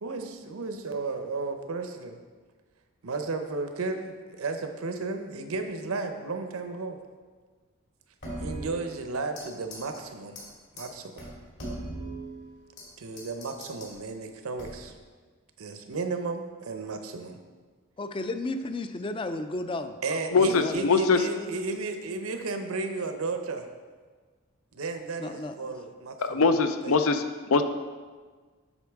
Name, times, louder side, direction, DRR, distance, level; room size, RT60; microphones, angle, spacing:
voice 1, 0.0-2.2 3.0-7.0 8.4-10.4 10.7-11.3 13.0-14.9 15.6-17.4 20.0-23.7 24.7-26.5 26.8-27.2, right 3 dB, 90° right, 6 dB, 0.7 m, -34 dB
sound 1, 8.2-9.5 9.7-10.0 10.4-10.5 10.8-10.9 11.2-12.9 13.2-13.9 14.6-15.0, right 1 dB, 55° left, 2.1 m, -39 dB
voice 2, 18.0-20.0 20.3-20.9 25.2-25.5, left 2 dB, 25° left, 9 dB, 0.3 m, -33 dB
voice 3, 20.3-21.2 26.2-27.2 27.5-27.6, left 4 dB, 80° left, 8 dB, 0.5 m, -22 dB
8.0 x 6.1 x 3.5 m, 1.5 s
head